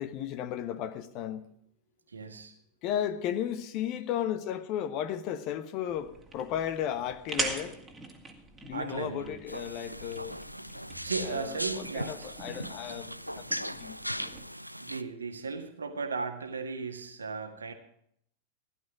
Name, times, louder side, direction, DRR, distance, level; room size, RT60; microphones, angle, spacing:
voice 1, 0.0-1.5 2.8-7.8 8.6-10.4 11.2-14.0, left 10 dB, 40° left, 1.2 m, -34 dB
voice 2, 2.1-2.5 8.7-9.3 11.0-12.3 14.8-17.7, right 4 dB, 75° right, 1.7 m, -36 dB
sound 1, 5.9-14.4, right 3 dB, 15° right, 2.2 m, -42 dB
sound 2, 9.5-15.0, equal, 90° right, 0.4 m, -38 dB
16.0 x 11.5 x 4.9 m
figure-of-eight pair, 90°, 0 cm